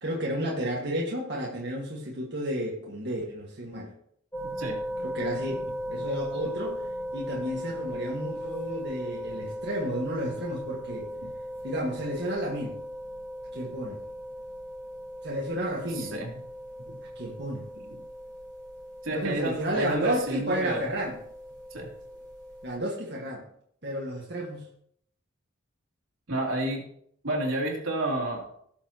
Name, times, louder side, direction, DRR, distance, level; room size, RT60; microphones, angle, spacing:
voice 1, 0.0-3.9 5.0-11.1 11.6-12.8 13.5-14.0 15.2-16.2 17.2-17.7 19.1-21.2 22.6-23.5 23.8-24.7, equal, 55° right, -3 dB, 1.7 m, -32 dB
sound 1, 4.3-22.7, equal, 10° left, 3.6 m, -38 dB
voice 2, 16.0-16.3 16.9-17.0 17.9-18.0 19.0-20.9 21.7-21.9 26.3-26.9 27.2-28.5, right 1 dB, 85° right, -2 dB, 2.9 m, -30 dB
17.5 x 7.1 x 2.9 m, 0.67 s
head